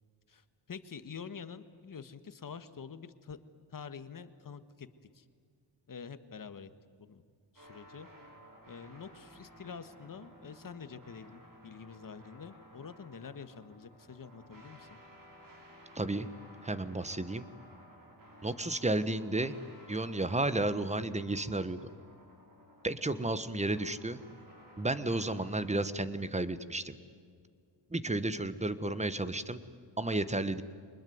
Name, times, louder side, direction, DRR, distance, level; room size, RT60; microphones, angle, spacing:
voice 1, 0.3-3.4 3.7-4.9 5.1-5.3 5.9-6.7 7.0-7.2 7.5-8.1 8.7-15.0, left 6 dB, 45° left, 11 dB, 1.7 m, -47 dB
sound 1, 7.6-25.8, equal, 45° right, 6.2 m, -56 dB
voice 2, 15.9-16.3 16.6-17.4 18.4-19.5 19.9-21.8 22.8-24.2 24.8-27.0 27.9-29.6 30.0-30.6, right 2 dB, 15° right, 14 dB, 1.4 m, -32 dB
25.0 x 20.5 x 9.5 m, 2.1 s
cardioid pair, 85°, 46 cm